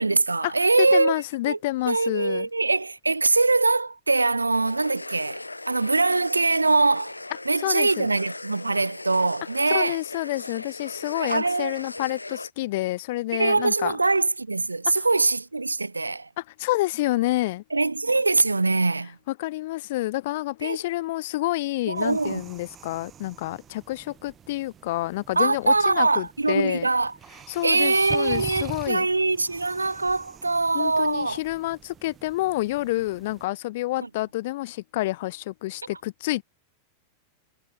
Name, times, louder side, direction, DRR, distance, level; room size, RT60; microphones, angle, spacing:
voice 1, 0.0-1.2 1.5-1.6 1.9-7.2 7.5-10.0 11.2-11.8 13.3-16.3 17.7-19.2 20.6-20.8 21.9-22.4 25.4-27.1 27.6-31.4 34.0-34.1, right 3 dB, 80° right, 1.9 m, -23 dB
voice 2, 0.9-2.5 7.6-8.1 9.7-14.0 16.6-17.6 19.3-26.9 27.5-29.1 30.7-36.4, left 18 dB, 50° left, 1.4 m, -28 dB
sound 1, 4.5-12.5, left 2 dB, 85° left, 4.0 m, -39 dB
sound 2, 21.9-33.5, right 9 dB, 25° right, 3.7 m, -45 dB
figure-of-eight pair, 90°, 0 cm